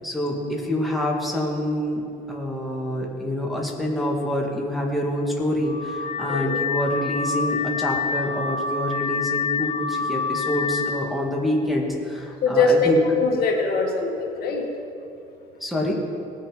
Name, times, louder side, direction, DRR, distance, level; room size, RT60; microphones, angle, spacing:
voice 1, 0.0-13.0 15.6-15.9, left 1 dB, ahead, -3 dB, 2.1 m, -26 dB
Car / Alarm, 5.6-11.1, left 5 dB, 40° left, 0.9 m, -27 dB
voice 2, 12.4-14.7, left 3 dB, 65° left, 1 dB, 1.8 m, -22 dB
19.5 x 6.5 x 5.2 m, 2.6 s
cardioid pair, 110°, 17 cm